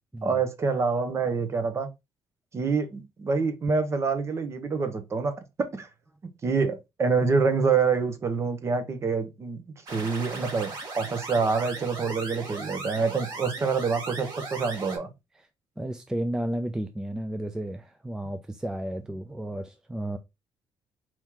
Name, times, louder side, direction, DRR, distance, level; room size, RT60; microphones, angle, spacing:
voice 1, 0.2-1.9 2.5-5.9 6.4-9.6 9.9-15.1, right 5 dB, 35° right, 0.9 m, -26 dB
sound 1, 9.9-15.0, right 3 dB, 55° right, 2.2 m, -38 dB
voice 2, 15.8-20.2, right 1 dB, 5° right, 0.4 m, -33 dB
4.4 x 3.0 x 3.6 m
cardioid pair, 145°, 9 cm